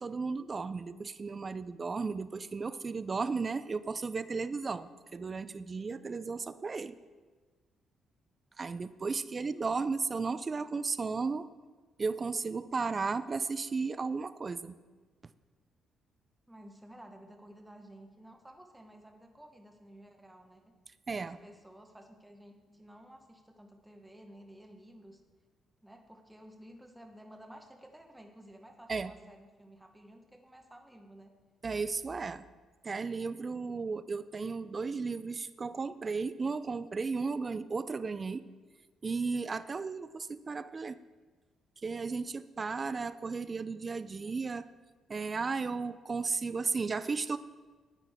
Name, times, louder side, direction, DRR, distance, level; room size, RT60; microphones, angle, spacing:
voice 1, 0.0-7.0 8.6-11.5 12.0-14.7 21.1-21.4 28.9-29.1 31.6-32.4 32.8-38.4 39.0-41.0 41.8-44.7 45.1-47.4, right 4 dB, 35° right, 14 dB, 0.4 m, -34 dB
voice 2, 9.2-9.7 16.5-20.6 21.2-25.2 25.8-31.3, right 1 dB, 5° right, 3 dB, 1.1 m, -54 dB
9.8 x 9.1 x 3.6 m, 1.4 s
cardioid pair, 90°, 0 cm